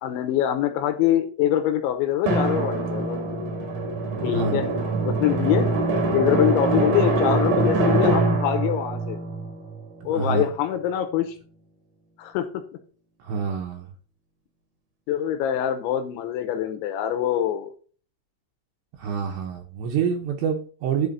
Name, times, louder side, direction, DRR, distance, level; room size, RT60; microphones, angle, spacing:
voice 1, 0.0-3.2 4.2-4.7 5.1-5.7 6.1-9.2 10.0-11.4 12.2-12.6 15.1-17.7, left 11 dB, 80° left, 8 dB, 3.0 m, -24 dB
Drum, 2.3-10.5, right 2 dB, 55° right, 2.3 m, -24 dB
voice 2, 4.2-4.6 10.1-10.5 13.2-13.9 19.0-21.1, right 6 dB, 75° right, 2 dB, 2.9 m, -27 dB
11.0 x 4.9 x 4.0 m, 0.42 s
omnidirectional pair, 5.7 m